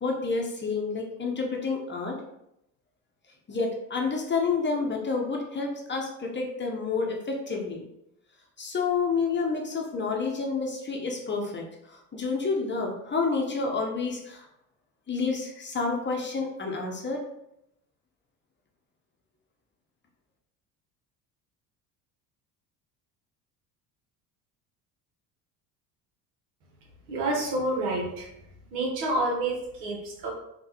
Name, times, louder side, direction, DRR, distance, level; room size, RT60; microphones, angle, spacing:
voice 1, 0.0-2.2 3.5-7.8 8.6-14.5 15.1-17.2, left 4 dB, 25° left, 1 dB, 0.7 m, -29 dB
voice 2, 27.1-28.3 28.7-30.3, right 2 dB, 80° right, -1 dB, 1.1 m, -28 dB
3.6 x 2.3 x 2.9 m, 0.82 s
hypercardioid pair, 65°, 48 cm